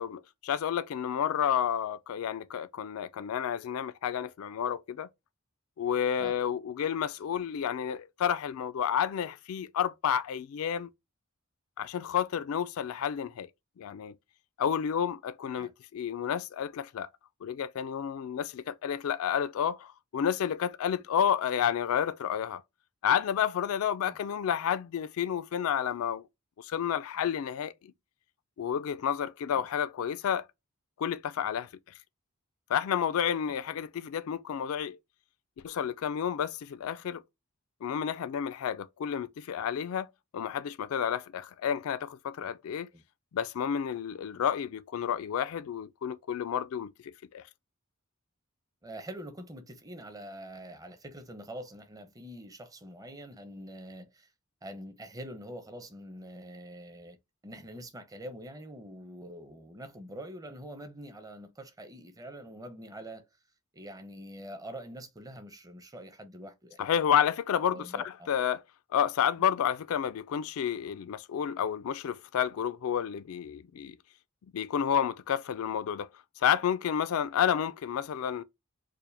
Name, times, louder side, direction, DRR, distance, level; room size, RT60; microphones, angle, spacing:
voice 1, 0.0-5.1 5.8-10.9 11.8-13.5 13.8-14.1 14.6-17.1 17.4-22.6 23.0-26.3 26.6-27.7 28.6-30.5 31.0-31.7 32.7-35.0 35.6-37.2 37.8-40.1 40.3-42.9 43.3-47.4 66.8-68.6 68.9-74.0 74.5-76.1 76.4-78.4, left 8 dB, 75° left, 0.3 m, -30 dB
voice 2, 48.8-54.3 54.6-57.2 57.4-63.3 63.7-66.8 67.7-68.3, right 1 dB, 15° right, 0.7 m, -45 dB
4.7 x 2.1 x 3.2 m
head